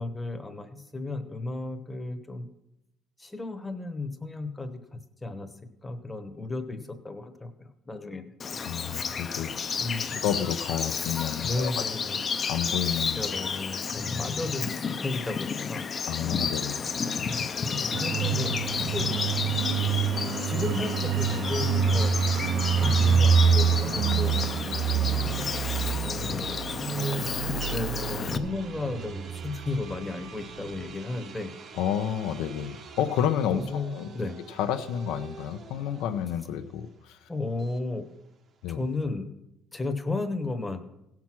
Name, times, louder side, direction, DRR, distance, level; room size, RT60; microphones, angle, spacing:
voice 1, 0.0-2.5 3.2-5.5 5.8-8.2 9.8-10.2 11.4-12.2 13.2-15.9 18.0-19.2 19.6-19.8 20.4-22.1 22.8-24.3 24.8-25.0 26.0-27.2 27.7-31.5 33.5-34.4 37.3-38.0 38.7-39.3 39.7-40.8, left 2 dB, 10° left, 8 dB, 0.9 m, -34 dB
Bird vocalization bird call bird song, 8.4-28.4, left 5 dB, 25° left, 0.6 m, -31 dB
voice 2, 8.6-9.7 10.1-11.7 12.5-13.2 16.1-16.8 31.7-34.1 34.6-37.3 38.6-38.8, left 9 dB, 80° left, 8 dB, 0.7 m, -30 dB
sound 1, 17.9-30.3 30.6-30.8, right 7 dB, 55° right, 0.4 m, -27 dB
sound 2, 26.8-39.0, right 6 dB, 35° right, 0.8 m, -47 dB
16.5 x 6.0 x 6.0 m, 0.87 s
cardioid pair, 165°, 0 cm